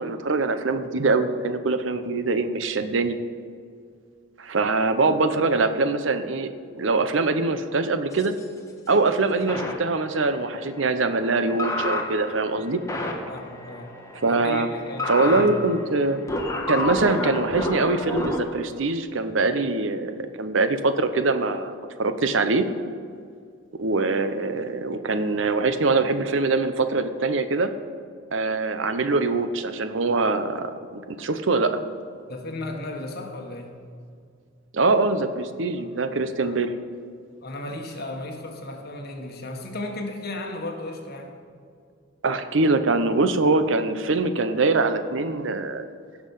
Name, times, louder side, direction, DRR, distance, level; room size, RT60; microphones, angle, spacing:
voice 1, 0.0-3.1 4.4-6.5 6.7-8.3 8.9-12.8 14.2-14.7 15.1-16.2 16.7-22.6 23.8-27.7 28.3-31.8 34.7-36.7 42.2-45.8, right 3 dB, 70° right, 10 dB, 0.7 m, -23 dB
sound 1, 8.1-8.4 9.5-18.4, left 1 dB, 15° left, 1.3 m, -31 dB
voice 2, 13.3-13.9 14.3-15.5 32.3-33.8 35.8-36.6 37.4-41.3, left 2 dB, 55° left, 3 dB, 1.5 m, -35 dB
16.5 x 6.1 x 5.5 m, 2.2 s
head